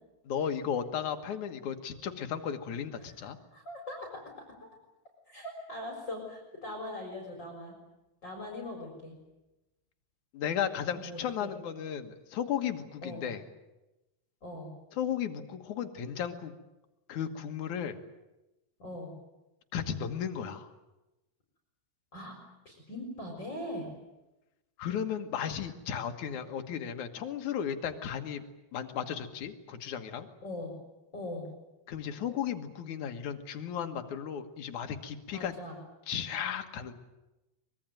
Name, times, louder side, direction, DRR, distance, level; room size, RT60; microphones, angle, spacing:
voice 1, 0.3-3.4 10.3-13.4 14.9-16.5 17.1-18.0 19.7-20.7 24.8-28.4 28.7-30.3 31.9-35.5 36.1-36.9, left 8 dB, 60° left, 6 dB, 2.4 m, -35 dB
voice 2, 3.0-4.4 5.3-7.7 8.2-9.1 10.9-11.5 13.0-13.3 14.4-14.7 18.8-19.1 22.1-22.4 22.6-23.9 30.4-30.7 31.1-31.5 35.3-35.8, left 1 dB, 25° left, 1 dB, 4.5 m, -41 dB
24.0 x 22.0 x 9.1 m, 1.0 s
omnidirectional pair, 4.8 m